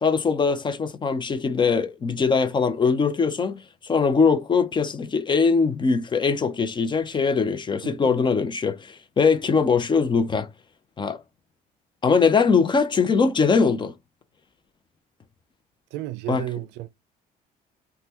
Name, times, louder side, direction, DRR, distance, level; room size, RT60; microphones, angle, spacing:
voice 1, 0.0-10.5 11.0-11.2 12.0-14.0 16.3-16.4, left 5 dB, 30° left, 0.5 m, -21 dB
voice 2, 7.8-8.1 15.9-16.9, right 14 dB, 90° right, 0.4 m, -33 dB
3.3 x 2.2 x 2.8 m
cardioid pair, 110°, 17 cm